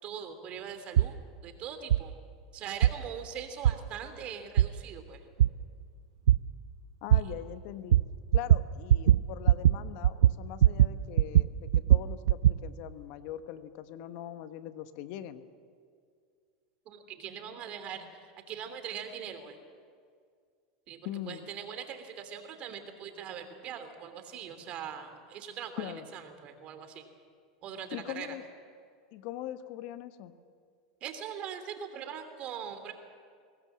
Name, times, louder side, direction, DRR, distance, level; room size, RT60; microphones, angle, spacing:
voice 1, 0.0-2.1 2.5-5.2 7.1-7.3 16.8-19.6 20.9-27.1 27.6-28.4 31.0-32.9, right 8 dB, 45° right, 8 dB, 3.1 m, -41 dB
sound 1, 1.0-1.1 1.9-2.0 2.8-2.9 3.6-3.7 4.6-4.7 5.4-5.5 6.3-6.4 7.1-7.2 7.9-8.0 8.3-8.6 8.9-9.2 9.5-9.8 10.0-10.9 11.2-12.6, right 12 dB, 85° right, 0.5 m, -20 dB
voice 2, 7.0-8.0 8.3-15.4 21.0-21.4 25.8-26.0 27.9-28.4 29.1-30.3, left 12 dB, 60° left, 10 dB, 1.2 m, -41 dB
23.5 x 18.5 x 7.5 m, 2.2 s
hypercardioid pair, 105°, 3 cm